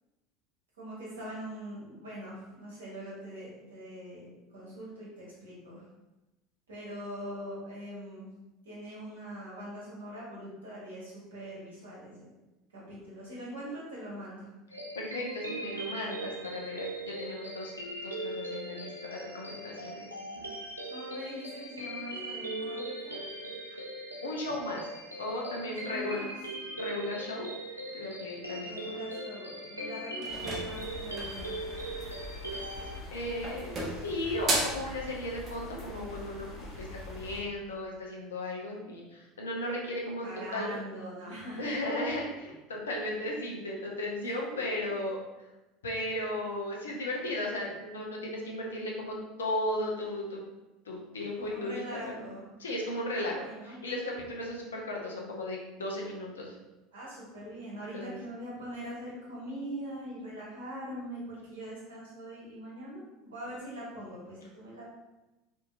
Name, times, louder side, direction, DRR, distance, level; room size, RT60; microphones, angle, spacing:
voice 1, 0.8-5.9 6.7-8.3 8.6-12.3 12.7-14.5 20.9-23.3 25.6-26.3 28.6-31.6 40.2-41.8 51.4-52.4 53.1-53.8 56.9-64.9, equal, 70° right, -6 dB, 1.0 m, -42 dB
sound 1, 14.7-33.0, right 1 dB, 90° right, 0.3 m, -40 dB
voice 2, 14.9-17.7 18.0-20.1 20.3-20.4 24.2-24.8 25.2-26.2 26.7-27.5 27.9-29.0 33.1-40.3 40.5-40.8 41.6-45.2 45.8-50.4 50.9-51.8 52.2-52.3 52.6-53.4 53.6-56.5 57.8-58.2, left 1 dB, 75° left, -2 dB, 0.5 m, -35 dB
sound 2, 30.2-31.4 32.7-33.1 33.4-34.9, right 2 dB, 35° right, 0.7 m, -33 dB
sound 3, 30.3-37.4, left 2 dB, 35° left, 1.0 m, -44 dB
2.7 x 2.6 x 2.3 m, 1.0 s
figure-of-eight pair, 70°, 0 cm